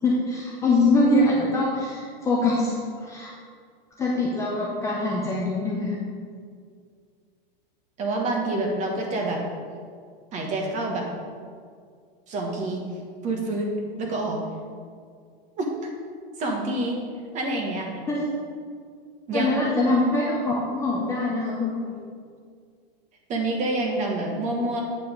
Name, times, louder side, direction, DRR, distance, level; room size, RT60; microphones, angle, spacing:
voice 1, 0.0-3.3 4.0-6.0 18.1-18.2 19.3-22.0, left 2 dB, 10° left, -4 dB, 0.6 m, -23 dB
voice 2, 8.0-9.4 10.3-11.1 12.3-12.8 13.2-13.7 14.0-14.4 15.6-15.7 16.4-17.0 17.3-18.0 19.3-19.5 23.3-24.8, right 2 dB, 25° right, 1 dB, 1.3 m, -27 dB
8.5 x 5.5 x 5.1 m, 2.1 s
supercardioid pair, 155°, 31 cm